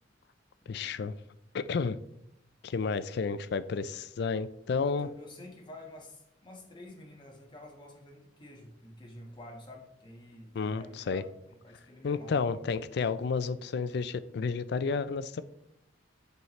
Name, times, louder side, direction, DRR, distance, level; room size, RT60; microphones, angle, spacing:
voice 1, 0.7-1.1 1.5-2.0 2.6-5.1 10.5-11.2 12.0-15.4, left 5 dB, 60° left, 14 dB, 0.4 m, -31 dB
voice 2, 4.8-12.6, left 1 dB, 25° left, 0 dB, 1.4 m, -49 dB
8.0 x 5.8 x 3.1 m, 0.77 s
head